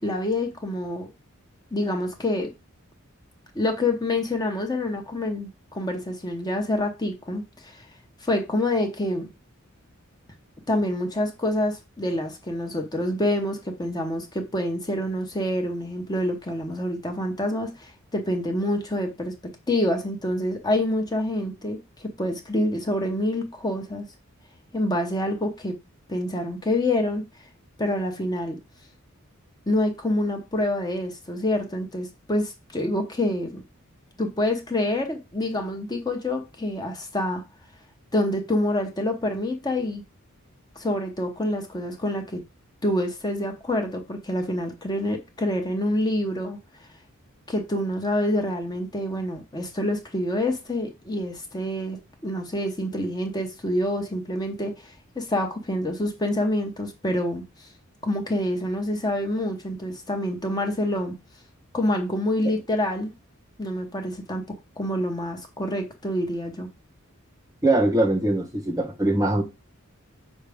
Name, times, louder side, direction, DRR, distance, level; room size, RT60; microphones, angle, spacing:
voice 1, 0.0-1.1 1.7-2.5 3.5-7.9 8.2-9.3 10.7-19.3 19.7-24.0 24.7-25.7 26.1-27.2 27.8-28.6 29.7-33.6 34.2-37.4 38.1-40.0 40.8-42.4 42.8-46.6 47.5-52.0 52.2-57.7 58.0-61.1 61.7-63.1 63.6-66.7, left 1 dB, 20° left, 0.9 m, -27 dB
voice 2, 67.6-69.4, right 2 dB, 15° right, 0.9 m, -22 dB
6.3 x 4.7 x 3.5 m
head